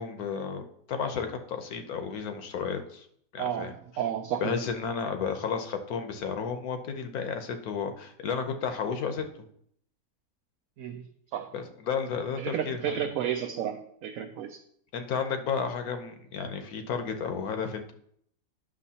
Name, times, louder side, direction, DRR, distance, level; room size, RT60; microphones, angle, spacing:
voice 1, 0.0-3.1 3.3-3.7 4.4-9.5 11.5-13.1 14.9-17.9, left 6 dB, 75° left, 7 dB, 1.3 m, -32 dB
voice 2, 3.4-4.6 10.8-11.0 11.3-11.5 12.4-14.6, right 9 dB, 70° right, 5 dB, 0.9 m, -32 dB
10.0 x 6.4 x 2.8 m, 0.68 s
omnidirectional pair, 1.6 m